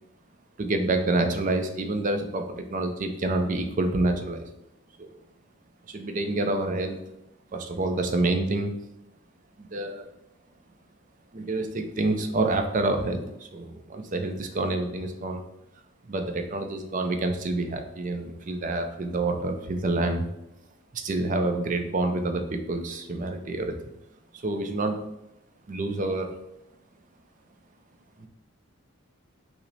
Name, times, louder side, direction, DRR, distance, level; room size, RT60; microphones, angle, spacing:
voice 1, 0.6-4.5 5.0-5.1 5.9-7.0 7.5-8.7 9.6-10.1 11.3-15.4 16.1-20.2 20.9-23.7 24.4-25.0 25.7-26.3 28.2-28.3, right 2 dB, 35° right, 6 dB, 0.4 m, -27 dB
5.6 x 2.1 x 4.0 m, 0.89 s
head